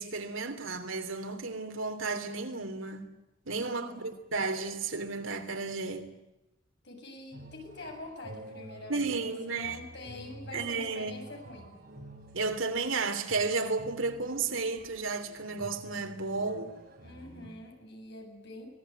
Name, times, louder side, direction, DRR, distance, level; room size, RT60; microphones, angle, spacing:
voice 1, 0.0-3.1 3.5-6.1 8.9-9.8 10.5-11.2 12.3-16.7, right 4 dB, 85° right, 3.2 m, -33 dB
voice 2, 3.8-4.2 6.8-11.8 17.0-18.7, left 2 dB, 60° left, 7.8 m, -46 dB
sound 1, 7.3-17.5, right 1 dB, 50° right, 5.8 m, -49 dB
25.5 x 19.5 x 9.6 m
head